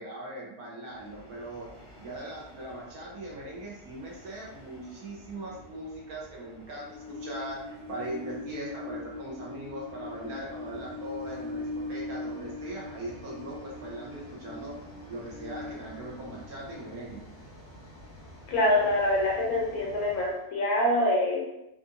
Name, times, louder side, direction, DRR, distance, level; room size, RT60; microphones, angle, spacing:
voice 1, 0.0-1.7 2.0-14.7 15.1-17.2, right 1 dB, 65° right, -4 dB, 1.2 m, -40 dB
Train, 0.9-20.4, left 2 dB, 20° left, 0.4 m, -43 dB
voice 2, 18.5-21.5, left 1 dB, 65° left, -2 dB, 1.1 m, -25 dB
3.6 x 2.6 x 2.5 m, 0.88 s
omnidirectional pair, 1.8 m